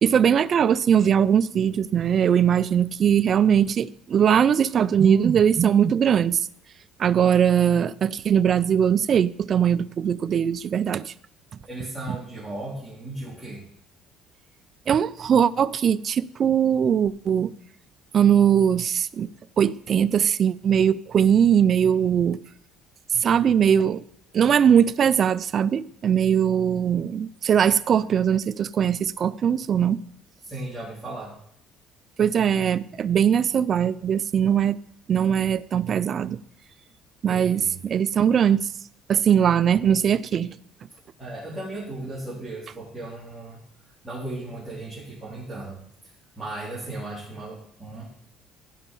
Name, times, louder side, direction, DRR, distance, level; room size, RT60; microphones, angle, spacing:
voice 1, 0.0-6.4 7.0-11.1 14.9-17.5 18.1-19.3 19.6-22.4 23.1-24.0 24.3-30.0 32.2-34.8 35.1-36.4 37.2-38.7 39.1-40.6, right 8 dB, 40° right, 0.4 m, -20 dB
voice 2, 11.7-13.6 30.5-31.4 37.3-37.7 41.2-43.6 44.0-45.8 46.4-48.0, right 2 dB, 15° right, 3.8 m, -36 dB
15.5 x 5.4 x 5.5 m
cardioid pair, 140°, 0 cm